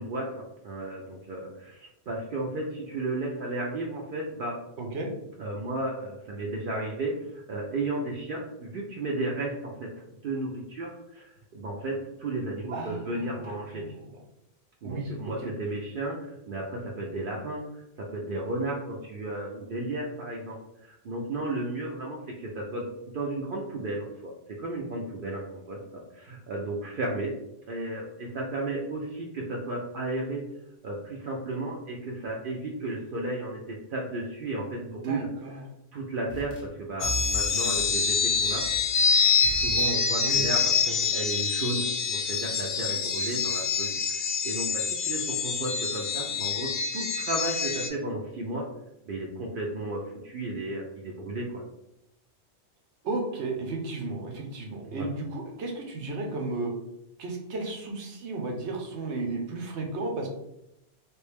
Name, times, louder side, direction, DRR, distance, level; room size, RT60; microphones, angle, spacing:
voice 1, 0.0-4.6 5.4-9.9 10.2-13.9 14.8-22.9 23.1-24.3 24.6-27.3 27.7-30.4 30.8-35.3 35.9-38.6 39.5-40.7 41.1-48.6 49.1-51.6 54.9-55.1, right 2 dB, 60° right, -2 dB, 0.7 m, -34 dB
voice 2, 4.8-5.1 12.7-14.2 14.8-15.5 35.0-35.6 40.2-40.4 53.0-56.7 57.2-60.3, right 2 dB, 85° right, 1 dB, 1.0 m, -34 dB
sound 1, 36.3-36.7 37.0-40.0 40.3-40.6, equal, 20° left, 0.7 m, -39 dB
sound 2, 37.0-47.9, left 5 dB, 90° left, 0.9 m, -26 dB
3.2 x 2.6 x 3.3 m, 0.83 s
omnidirectional pair, 1.1 m